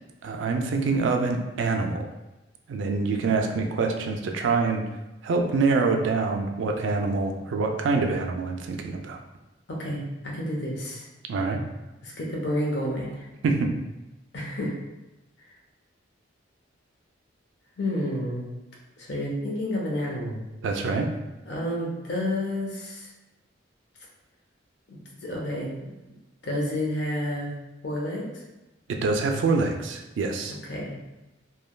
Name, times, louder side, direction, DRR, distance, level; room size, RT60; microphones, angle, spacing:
voice 1, 0.2-2.1 2.7-4.8 5.2-9.2 11.3-11.6 13.4-13.7 20.6-21.1 28.9-30.6, right 4 dB, 75° right, 4 dB, 0.3 m, -25 dB
voice 2, 9.7-11.1 12.0-13.3 14.3-14.8 17.8-18.5 19.0-20.4 21.4-23.1 24.9-25.8 26.4-27.5 27.8-28.4 30.5-31.0, left 1 dB, 60° left, -3 dB, 0.7 m, -30 dB
3.2 x 2.2 x 2.2 m, 1.0 s
head